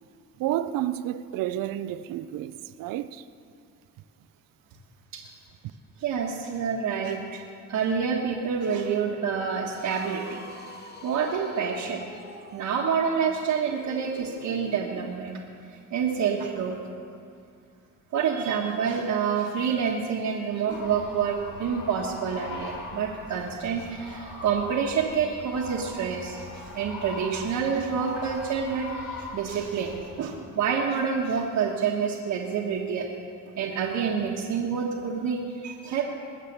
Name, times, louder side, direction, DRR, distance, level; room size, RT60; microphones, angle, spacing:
voice 1, 0.4-3.2, right 13 dB, 90° right, 0.6 m, -30 dB
voice 2, 6.0-7.4 7.7-10.4 11.0-12.0 12.5-15.4 15.9-16.8 18.1-33.1 33.6-36.0, right 6 dB, 65° right, 1.3 m, -28 dB
sound 1, 9.6-15.2, left 1 dB, 30° left, 2.0 m, -46 dB
sound 2, 20.7-30.1, left 2 dB, 45° left, 3.0 m, -41 dB
21.0 x 7.5 x 6.7 m
cardioid pair, 130°, 32 cm